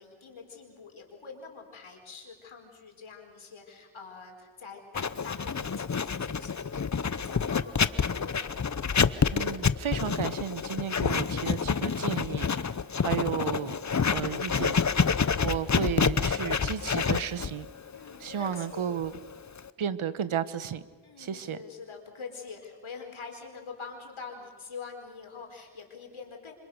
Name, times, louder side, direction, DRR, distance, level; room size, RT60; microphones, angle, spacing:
voice 1, 0.0-8.6 17.9-18.9 21.0-26.5, left 5 dB, 75° left, 2 dB, 4.9 m, -45 dB
Writing, 5.0-19.7, left 6 dB, 35° left, 0.9 m, -28 dB
voice 2, 9.3-12.7 13.0-13.8 14.1-14.8 15.4-17.7 18.2-19.1 19.8-20.8 21.2-21.6, right 8 dB, 80° right, 15 dB, 1.2 m, -33 dB
28.0 x 26.0 x 6.5 m, 1.5 s
cardioid pair, 70°, 48 cm